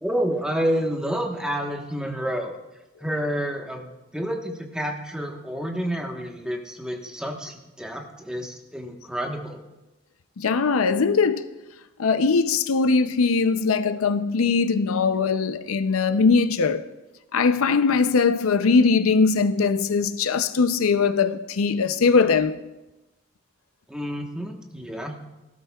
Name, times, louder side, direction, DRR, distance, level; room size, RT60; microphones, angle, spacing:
voice 1, 0.0-2.5 3.0-9.6 23.9-25.2, equal, 5° right, 1.1 m, -29 dB
voice 2, 10.4-11.5 12.0-16.8 17.3-22.6, left 4 dB, 90° left, 0.5 m, -21 dB
17.5 x 12.5 x 2.3 m
head